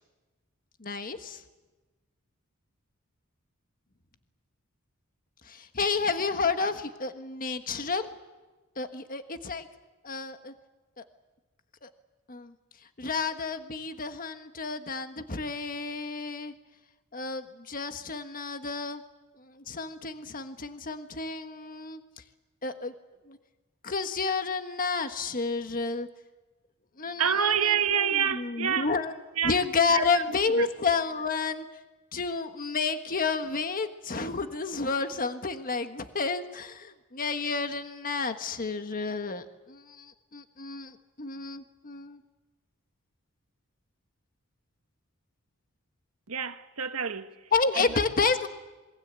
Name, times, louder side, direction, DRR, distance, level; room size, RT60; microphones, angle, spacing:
voice 1, 0.8-1.4 5.5-8.1 8.8-9.7 10.0-10.5 11.0-11.1 11.8-11.9 12.3-12.5 13.0-16.5 17.1-19.0 19.6-22.0 22.6-22.9 23.3-23.4 23.8-26.1 27.0-29.1 29.4-31.6 32.1-42.2 47.5-48.5, left 4 dB, 40° left, 1.4 m, -30 dB
voice 2, 27.2-28.9 29.4-29.6 29.9-30.2 30.6-30.7 46.3-47.3, right 8 dB, 85° right, 1.5 m, -27 dB
27.0 x 23.0 x 8.2 m
head